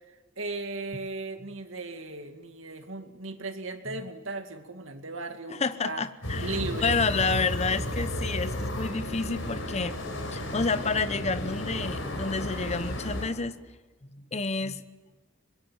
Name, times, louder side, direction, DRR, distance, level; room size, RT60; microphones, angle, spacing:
voice 1, 0.4-6.0 6.4-7.0 9.8-10.3, right 3 dB, 75° right, 6 dB, 2.2 m, -37 dB
voice 2, 5.5-10.0 10.3-13.6 14.1-14.8, left 4 dB, 35° left, 13 dB, 0.9 m, -29 dB
sound 1, 6.2-13.3, left 1 dB, 75° left, 4.7 m, -33 dB
24.5 x 21.5 x 9.0 m, 1.2 s
head